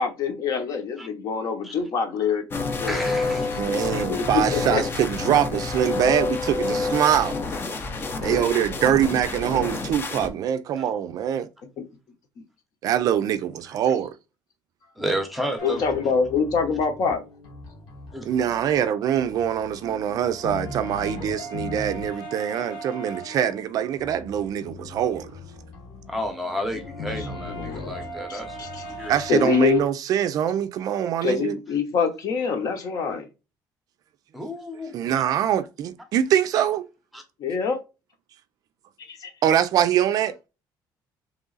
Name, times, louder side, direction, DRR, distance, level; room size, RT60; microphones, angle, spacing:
voice 1, 0.0-3.0 4.1-4.8 8.2-8.7 15.6-17.2 27.2-27.9 28.3-28.8 29.3-29.8 31.2-33.3 37.4-37.8 39.1-39.3, left 6 dB, 50° left, 1.0 m, -25 dB
sound 1, 2.5-10.3, left 3 dB, 25° left, 0.6 m, -28 dB
voice 2, 2.8-3.6 13.7-13.8 15.0-15.8 18.1-18.3 26.1-29.2 34.3-35.1 37.1-37.2, equal, ahead, 0.8 m, -31 dB
voice 3, 3.6-7.4 8.2-11.5 12.8-14.1 18.2-25.4 29.1-31.6 34.9-36.8 39.4-40.4, right 10 dB, 50° right, 0.4 m, -23 dB
sound 2, 15.6-18.8 19.1-29.8, left 1 dB, 75° left, 1.5 m, -38 dB
3.7 x 3.1 x 3.9 m
cardioid pair, 170°, 8 cm